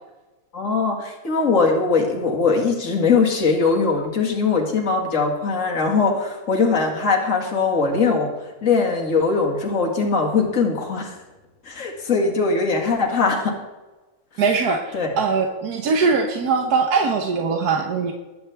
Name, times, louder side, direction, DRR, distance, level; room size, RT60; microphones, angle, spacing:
voice 1, 0.5-11.2 11.6-13.6 14.3-14.4 14.9-15.2, left 4 dB, 55° left, 0 dB, 2.5 m, -21 dB
voice 2, 14.4-18.1, right 4 dB, 75° right, 3 dB, 1.6 m, -21 dB
21.0 x 9.4 x 3.5 m, 1.2 s
omnidirectional pair, 1.7 m